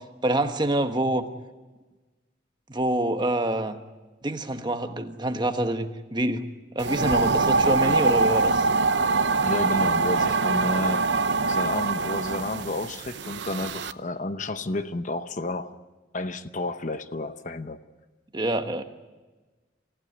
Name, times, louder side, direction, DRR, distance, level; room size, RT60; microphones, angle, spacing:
voice 1, 0.2-1.3 2.7-3.8 4.2-6.4 6.7-8.7 18.3-18.8, right 1 dB, 25° right, 7 dB, 1.2 m, -26 dB
sound 1, 6.8-13.9, right 3 dB, 65° right, 0.7 m, -24 dB
voice 2, 9.4-11.1 11.5-15.8 16.1-17.8, left 2 dB, 40° left, 10 dB, 0.8 m, -31 dB
27.5 x 15.5 x 9.7 m, 1.2 s
head